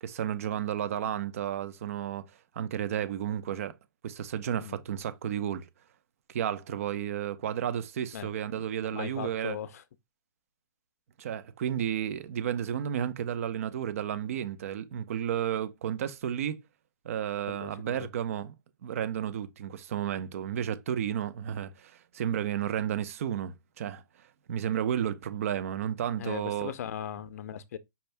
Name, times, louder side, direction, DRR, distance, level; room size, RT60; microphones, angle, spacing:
voice 1, 0.0-2.3 2.6-3.7 4.0-5.7 6.3-9.6 11.2-16.6 17.0-18.5 18.8-24.0 24.5-26.7, right 9 dB, 40° right, 0.6 m, -32 dB
voice 2, 8.1-9.8 17.5-18.0 26.2-27.8, left 9 dB, 45° left, 0.6 m, -39 dB
5.6 x 2.6 x 3.3 m
hypercardioid pair, 170°, 11 cm